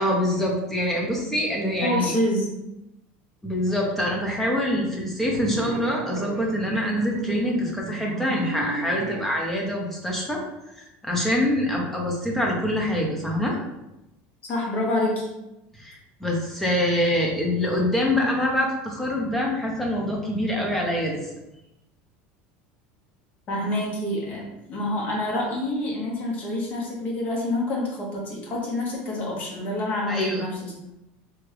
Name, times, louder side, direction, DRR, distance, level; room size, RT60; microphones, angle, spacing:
voice 1, 0.0-2.2 3.4-10.4 11.0-13.6 15.8-21.2 30.1-30.4, left 1 dB, 5° left, -1 dB, 0.7 m, -25 dB
voice 2, 1.8-2.6 14.5-15.3 23.5-30.7, left 1 dB, 30° left, -3 dB, 1.1 m, -27 dB
sound 1, 5.3-9.3, right 5 dB, 65° right, 0.4 m, -34 dB
3.4 x 2.9 x 3.3 m, 0.91 s
cardioid pair, 165°, 5 cm